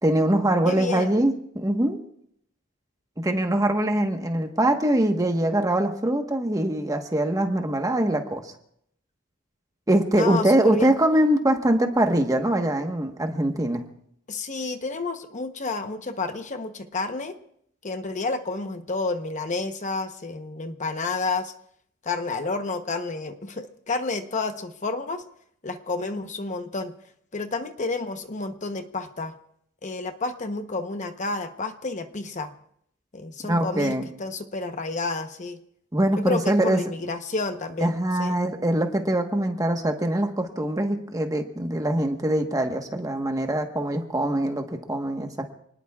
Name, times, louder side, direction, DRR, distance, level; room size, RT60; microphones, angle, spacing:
voice 1, 0.0-2.0 3.2-8.5 9.9-13.8 33.5-34.0 35.9-36.8 37.8-45.4, right 1 dB, 20° right, 4 dB, 1.3 m, -23 dB
voice 2, 0.6-1.2 10.1-10.9 14.3-17.3 17.8-21.5 22.0-25.2 25.6-26.9 27.3-29.3 29.8-32.5 33.1-35.6 36.2-37.9 38.2-38.3, left 3 dB, 40° left, 7 dB, 0.9 m, -30 dB
28.0 x 19.5 x 2.4 m, 0.71 s
head